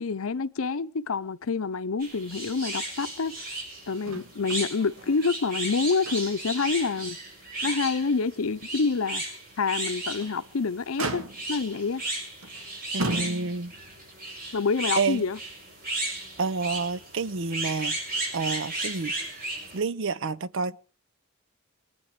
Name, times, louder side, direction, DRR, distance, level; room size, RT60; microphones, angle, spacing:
voice 1, 0.0-3.4 3.9-7.2 7.6-9.2 9.6-12.0 14.5-15.4, left 4 dB, 75° left, 0.6 m, -27 dB
sound 1, 2.0-19.8, right 2 dB, 45° right, 7.0 m, -35 dB
Motor vehicle (road), 4.0-4.7 5.0-5.1 5.6-6.5 7.0-7.1 7.6-7.7 10.0-10.4 11.0-11.7 12.4-12.6 13.0-13.8 14.9-15.0, right 2 dB, 80° right, 1.8 m, -35 dB
voice 2, 12.9-13.7 15.0-15.2 16.4-18.0 18.3-19.1 19.7-20.8, right 4 dB, 65° right, 0.7 m, -29 dB
24.0 x 9.5 x 5.1 m
head